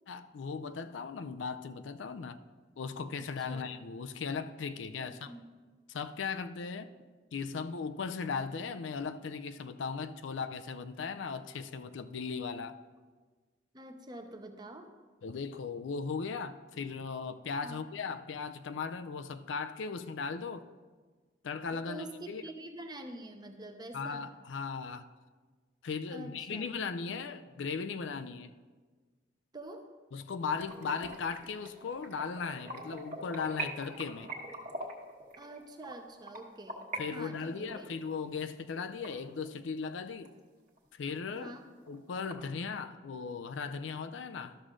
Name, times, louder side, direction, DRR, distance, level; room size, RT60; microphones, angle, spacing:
voice 1, 0.1-2.4 2.8-5.3 5.9-6.9 7.3-12.8 15.2-20.7 21.4-22.4 23.9-25.1 25.8-28.5 30.1-34.3 36.9-40.3 40.9-41.5 41.9-44.6, left 5 dB, 75° left, 0.5 m, -37 dB
voice 2, 3.2-3.7 5.0-5.4 13.7-14.9 17.6-17.8 21.9-24.3 26.1-26.7 29.5-29.9 35.4-36.9 37.1-37.9 41.3-41.7, right 1 dB, 25° right, 0.7 m, -46 dB
sound 1, 30.6-37.0 37.3-39.9 40.2-40.3 40.8-40.9 41.2-41.3 41.6-42.3, right 2 dB, 45° right, 1.4 m, -43 dB
12.5 x 6.3 x 3.7 m
head